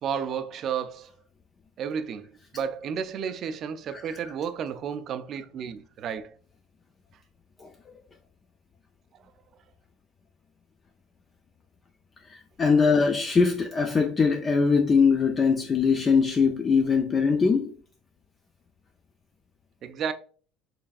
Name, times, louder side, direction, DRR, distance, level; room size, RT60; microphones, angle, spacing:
voice 1, 0.0-1.1 1.8-6.4 19.8-20.1, right 7 dB, 45° right, 0.4 m, -32 dB
voice 2, 12.3-17.7, left 5 dB, 25° left, 0.4 m, -22 dB
4.0 x 3.3 x 2.4 m
cardioid pair, 130°, 0 cm